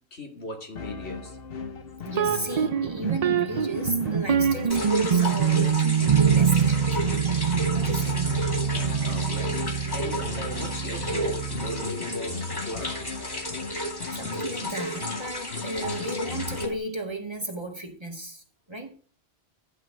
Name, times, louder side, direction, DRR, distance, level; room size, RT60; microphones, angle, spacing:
voice 1, 0.0-1.4 9.0-13.0, left 1 dB, 85° left, 2.9 m, -39 dB
sound 1, 0.8-16.8, left 4 dB, 65° left, 1.3 m, -37 dB
voice 2, 2.0-7.2 7.7-8.2 14.1-18.4 18.7-18.9, right 1 dB, 25° right, 2.1 m, -34 dB
sound 2, 2.1-11.9, right 7 dB, 45° right, 0.6 m, -25 dB
sound 3, 4.7-16.7, equal, 20° left, 2.2 m, -33 dB
12.0 x 5.7 x 7.6 m
omnidirectional pair, 1.1 m